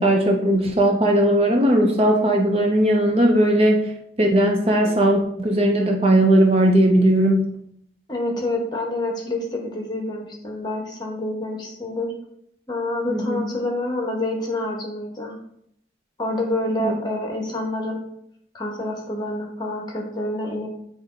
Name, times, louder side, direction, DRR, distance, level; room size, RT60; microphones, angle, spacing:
voice 1, 0.0-3.9 4.2-7.5 13.1-13.4 16.8-17.0, right 1 dB, 30° right, 2 dB, 0.6 m, -18 dB
voice 2, 8.1-12.1 12.7-15.4 16.2-18.0 18.5-20.7, left 1 dB, 25° left, 1 dB, 1.1 m, -27 dB
8.4 x 3.0 x 3.8 m, 0.72 s
head